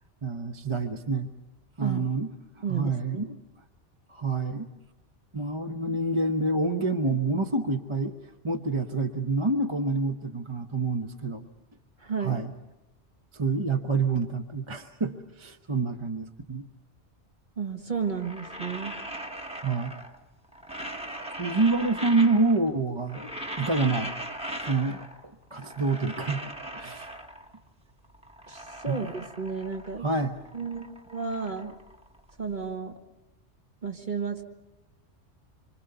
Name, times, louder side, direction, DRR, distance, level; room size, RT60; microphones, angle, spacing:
voice 1, 0.2-1.3 1.8-2.3 2.7-3.3 4.1-4.7 5.3-8.1 8.4-11.4 12.2-12.5 13.3-16.7 19.6-19.9 21.4-23.3 23.6-24.1 24.6-25.0 25.5-26.4 26.7-27.1 28.9-29.0 30.0-30.4, right 3 dB, 25° right, 5 dB, 1.0 m, -27 dB
voice 2, 2.6-3.3 12.0-12.4 17.6-18.9 28.5-30.1 30.5-31.7 32.4-33.0 33.8-34.4, right 5 dB, 45° right, 4 dB, 1.7 m, -33 dB
sound 1, 18.0-20.2 20.5-22.7 23.0-25.2 25.5-27.6 28.0-30.1 30.3-32.5, right 1 dB, 5° right, 1.3 m, -39 dB
26.0 x 25.5 x 6.8 m, 1.0 s
omnidirectional pair, 1.2 m